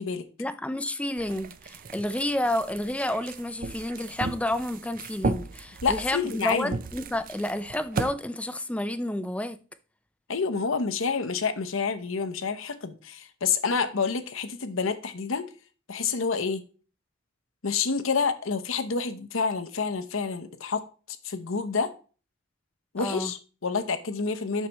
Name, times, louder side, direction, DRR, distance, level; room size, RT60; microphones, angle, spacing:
voice 1, 0.4-9.6 23.0-23.3, left 1 dB, 5° left, 0.4 m, -30 dB
sound 1, 1.2-8.1, right 3 dB, 40° right, 0.5 m, -35 dB
voice 2, 5.8-6.7 10.3-15.5 15.9-16.6 17.6-21.9 22.9-24.7, left 5 dB, 70° left, 0.9 m, -28 dB
9.1 x 6.5 x 3.0 m
head